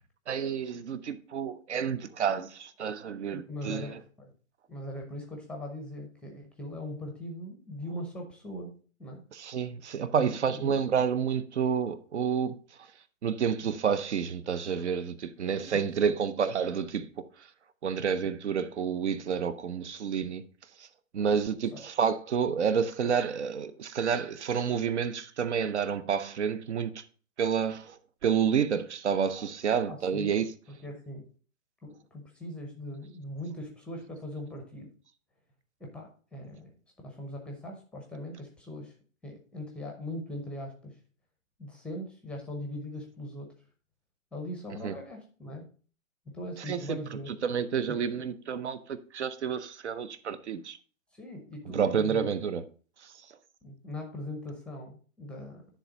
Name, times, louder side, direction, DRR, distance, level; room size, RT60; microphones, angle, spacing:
voice 1, 0.3-4.0 9.3-12.6 13.2-17.1 17.8-20.4 20.8-20.9 21.1-27.0 27.4-30.5 44.8-45.0 46.7-47.0 47.3-50.8 51.7-52.6 53.0-53.1, right 7 dB, 55° right, 0.8 m, -29 dB
voice 2, 3.3-4.3 4.7-9.2 10.2-10.9 15.5-16.1 21.2-21.4 21.7-21.8 29.9-30.3 30.7-31.3 31.8-34.9 35.8-36.7 37.0-38.9 39.2-41.0 41.6-43.5 44.3-45.7 46.3-47.3 47.9-48.0 51.1-52.3 53.6-55.6, left 1 dB, 5° left, 0.7 m, -40 dB
10.0 x 3.4 x 5.1 m
figure-of-eight pair, 130°, 40 cm